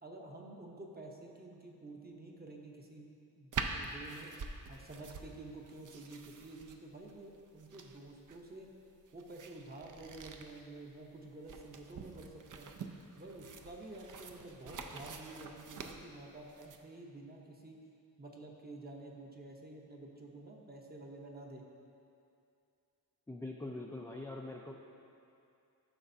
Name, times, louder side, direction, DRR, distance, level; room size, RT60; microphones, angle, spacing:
voice 1, 0.0-3.1 3.4-4.3 4.7-8.7 9.1-12.7 13.1-17.8 18.2-21.6, right 2 dB, 25° right, 0 dB, 0.8 m, -50 dB
sound 1, 3.5-16.8, right 5 dB, 55° right, 0.5 m, -46 dB
voice 2, 23.3-24.7, left 2 dB, 10° left, -1 dB, 0.3 m, -43 dB
12.5 x 5.9 x 2.7 m, 2.6 s
wide cardioid pair, 145°, 37 cm